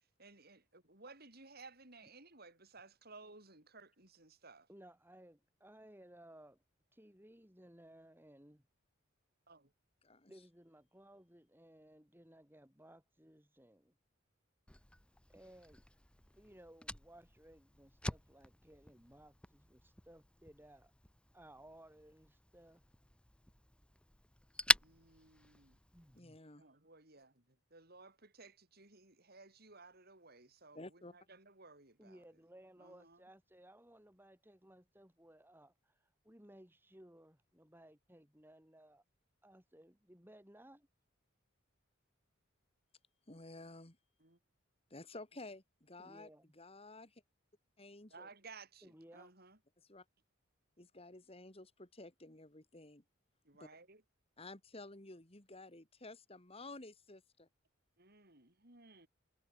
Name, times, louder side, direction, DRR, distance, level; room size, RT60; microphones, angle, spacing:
voice 1, 0.2-4.7 9.5-9.7 24.8-25.8 26.6-30.8 31.1-32.2 32.8-33.2 44.2-44.4 48.1-49.6 53.4-54.0 58.0-59.1, right 3 dB, 50° right, 7.9 m, -58 dB
voice 2, 4.7-6.6 6.9-8.6 10.3-13.9 15.3-15.8 16.4-20.9 21.3-22.8 25.9-26.4 32.0-36.0 36.2-39.0 39.4-40.9 46.0-46.5 48.8-49.3, right 1 dB, 10° right, 7.6 m, -60 dB
voice 3, 10.0-10.4 26.1-26.6 30.7-31.1 43.3-44.0 44.9-47.2 47.8-48.3 49.8-50.1 50.8-53.0 53.5-53.7 54.4-57.5, left 2 dB, 30° left, 2.4 m, -53 dB
Fire, 14.7-26.2, left 1 dB, 5° left, 1.0 m, -42 dB
head